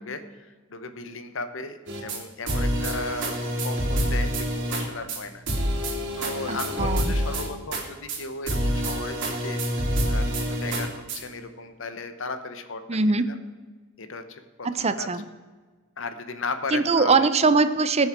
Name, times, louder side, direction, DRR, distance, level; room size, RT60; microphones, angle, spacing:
voice 1, 0.0-3.4 3.6-5.4 6.2-9.6 10.1-12.8 13.3-13.4 14.0-15.1 16.0-17.3, left 3 dB, 70° left, 9 dB, 1.1 m, -35 dB
sound 1, 1.9-2.2 2.5-4.8 5.1-5.2 5.5-7.8 8.1-8.2 8.5-11.2, equal, 60° right, 2.9 m, -27 dB
voice 2, 6.5-7.1 12.9-13.3 14.6-15.3 16.7-18.1, right 4 dB, 30° right, 12 dB, 0.6 m, -22 dB
18.5 x 7.4 x 4.5 m, 1.4 s
head